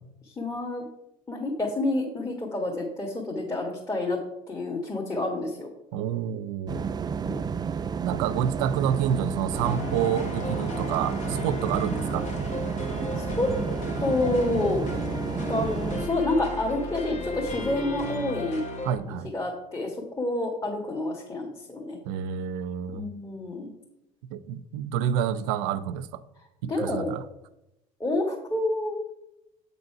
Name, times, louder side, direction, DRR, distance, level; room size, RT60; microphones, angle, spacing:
voice 1, 0.2-0.8 1.3-4.2 4.5-5.7 7.2-7.4 13.2-13.5 14.0-14.8 15.5-18.6 19.0-22.0 22.9-23.7 26.7-27.1 28.0-29.0, left 2 dB, 20° left, 1.5 m, -28 dB
voice 2, 5.9-6.9 8.0-12.3 18.8-19.3 22.1-23.0 24.3-26.2 26.6-27.2, right 9 dB, 80° right, 0.5 m, -28 dB
sound 1, 6.7-16.1, right 6 dB, 25° right, 0.3 m, -31 dB
sound 2, 9.5-19.0, left 3 dB, 45° left, 1.5 m, -35 dB
7.7 x 4.0 x 5.7 m
supercardioid pair, 80°, 17 cm